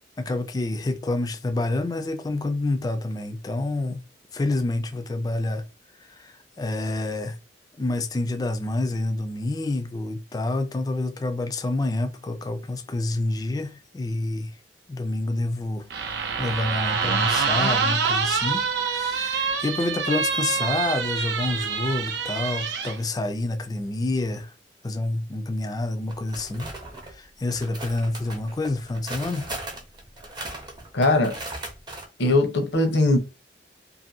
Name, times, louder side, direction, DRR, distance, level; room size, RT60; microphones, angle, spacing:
voice 1, 0.2-4.0 4.3-5.6 6.0-7.4 7.8-14.5 14.9-15.9 16.4-24.5 24.8-26.7 27.1-29.5, left 2 dB, 20° left, 0.3 m, -28 dB
sound 1, 15.9-23.0, right 5 dB, 80° right, 0.5 m, -26 dB
sound 2, 26.1-27.1 27.5-32.1, right 2 dB, 25° right, 0.6 m, -38 dB
voice 2, 30.9-31.4 32.2-33.2, left 2 dB, 85° left, 0.7 m, -20 dB
2.6 x 2.5 x 2.6 m
head